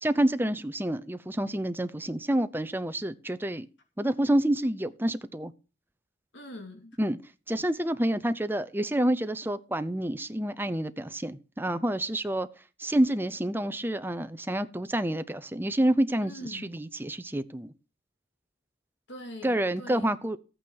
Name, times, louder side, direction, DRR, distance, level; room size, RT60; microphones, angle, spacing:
voice 1, 0.0-3.7 4.0-5.5 7.0-7.2 7.5-12.5 12.8-17.7 19.4-20.4, right 1 dB, 10° right, 0.7 m, -28 dB
voice 2, 6.3-7.0 16.2-16.7 19.1-20.1, left 1 dB, 65° left, 2.5 m, -43 dB
14.0 x 8.9 x 4.8 m
head